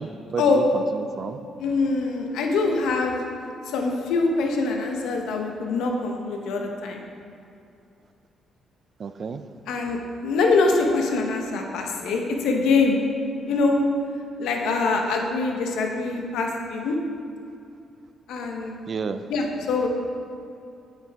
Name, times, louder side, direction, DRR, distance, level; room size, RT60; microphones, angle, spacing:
voice 1, 0.0-1.4 9.0-9.4 18.9-19.2, right 5 dB, 50° right, 10 dB, 0.3 m, -31 dB
voice 2, 1.6-3.2 3.7-7.0 9.7-13.0 13.5-13.8 14.4-17.0 18.3-18.7 19.3-19.9, left 3 dB, 85° left, 2 dB, 0.9 m, -24 dB
8.3 x 6.7 x 3.5 m, 2.5 s
cardioid pair, 90°, 0 cm